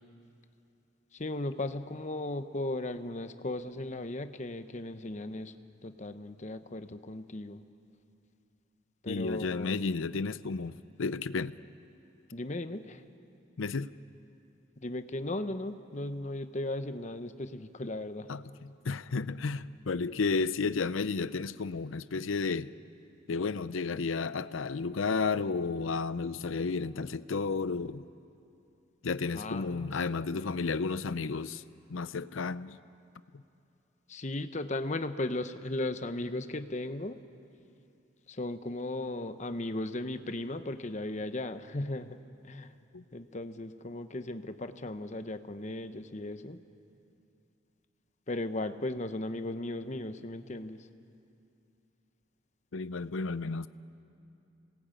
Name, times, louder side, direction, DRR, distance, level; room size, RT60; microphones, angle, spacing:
voice 1, 1.1-5.5 5.8-7.6 9.0-9.8 12.3-13.0 14.8-18.3 29.3-29.9 34.1-37.2 38.3-42.2 42.4-42.7 43.1-46.6 48.3-50.9, left 2 dB, 35° left, 10 dB, 0.9 m, -36 dB
voice 2, 9.1-11.5 13.6-13.9 18.3-22.7 23.3-28.0 29.0-31.6 31.9-32.8 33.3-33.4 42.9-43.0 52.7-53.7, left 4 dB, 85° left, 15 dB, 0.6 m, -32 dB
27.0 x 19.0 x 9.1 m, 2.7 s
head